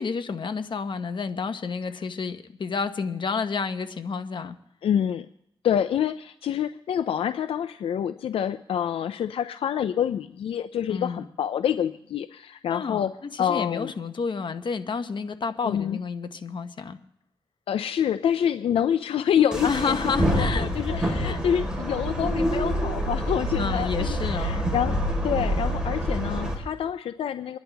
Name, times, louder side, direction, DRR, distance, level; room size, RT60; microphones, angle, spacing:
voice 1, 0.0-4.6 10.9-11.2 12.7-13.1 13.3-17.0 19.6-21.4 23.6-24.6, left 5 dB, 60° left, 8 dB, 1.0 m, -30 dB
voice 2, 4.8-5.3 5.6-13.1 13.4-13.9 15.6-16.0 17.7-20.0 20.3-25.0 25.2-27.6, left 9 dB, 90° left, 11 dB, 0.4 m, -27 dB
sound 1, 19.5-26.5, equal, 10° right, 4.0 m, -26 dB
26.5 x 10.5 x 3.4 m, 0.75 s
cardioid pair, 70°, 9 cm